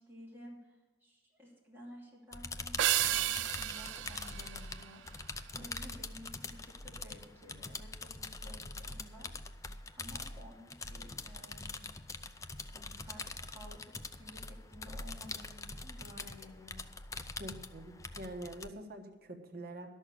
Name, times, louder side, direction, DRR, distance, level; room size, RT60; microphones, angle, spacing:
voice 1, 0.0-5.0 5.5-9.6 9.9-11.9 12.7-16.8, equal, 10° right, -5 dB, 2.8 m, -54 dB
sound 1, 2.3-18.7, left 3 dB, 15° left, 0.5 m, -44 dB
sound 2, 2.8-5.4, right 13 dB, 80° right, 0.4 m, -33 dB
voice 2, 17.4-19.9, right 1 dB, 55° right, 3 dB, 1.4 m, -45 dB
12.0 x 6.5 x 8.4 m, 1.1 s
head